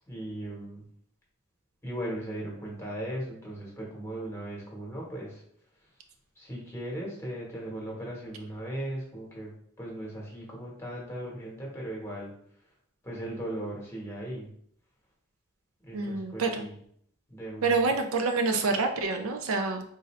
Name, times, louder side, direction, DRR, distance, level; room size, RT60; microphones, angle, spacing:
voice 1, 0.1-0.8 1.8-5.4 6.4-9.5 9.8-12.3 13.0-14.5 15.8-16.8 17.3-17.9, right 1 dB, 10° left, -4 dB, 1.1 m, -37 dB
voice 2, 15.9-16.6 17.6-19.8, right 3 dB, 75° right, 5 dB, 0.5 m, -27 dB
3.9 x 2.6 x 3.1 m, 0.65 s
head